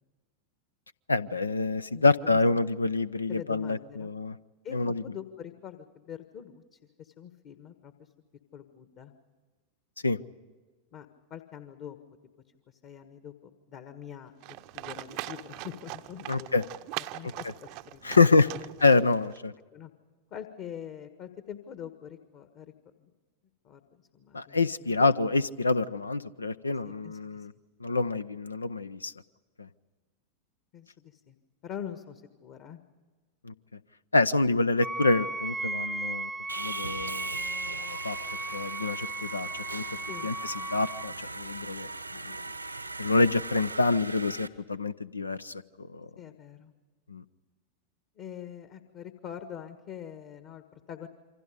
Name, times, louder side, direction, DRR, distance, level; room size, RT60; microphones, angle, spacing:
voice 1, 1.1-4.3 4.7-5.0 10.0-10.2 16.3-16.6 18.0-18.5 18.8-19.5 24.3-27.5 27.8-29.1 29.6-29.7 33.4-33.5 34.1-36.3 36.6-38.2 38.5-39.8 40.2-41.9 42.2-42.3 43.0-46.1 47.1-47.2, left 3 dB, 80° left, 16 dB, 0.6 m, -26 dB
voice 2, 1.9-2.6 3.3-4.1 4.6-8.1 8.5-9.1 10.9-12.0 12.7-16.5 17.1-18.0 18.6-18.7 19.7-19.9 20.3-22.7 23.0-23.1 23.6-24.6 27.0-27.5 30.7-31.4 31.6-32.8 40.1-40.3 46.2-46.7 48.2-51.1, left 9 dB, 40° left, 9 dB, 1.5 m, -44 dB
Livestock farm animals working animals, 14.4-19.4, right 19 dB, 45° right, 0.7 m, -41 dB
Wind instrument woodwind instrument, 34.8-41.1, right 2 dB, 5° right, 0.8 m, -36 dB
Sawing, 36.5-44.5, right 3 dB, 85° right, 1.1 m, -39 dB
28.0 x 25.0 x 5.1 m, 1.3 s
figure-of-eight pair, 90°, 0 cm